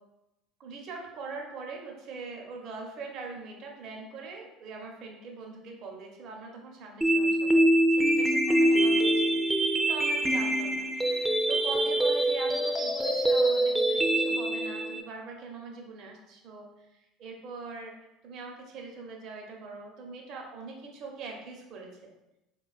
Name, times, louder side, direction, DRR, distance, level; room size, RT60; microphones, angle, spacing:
voice 1, 0.6-21.9, right 4 dB, 60° right, 1 dB, 0.6 m, -42 dB
sound 1, 7.0-15.0, right 1 dB, 10° right, 0.4 m, -24 dB
3.6 x 2.2 x 2.3 m, 0.91 s
hypercardioid pair, 80°, 0 cm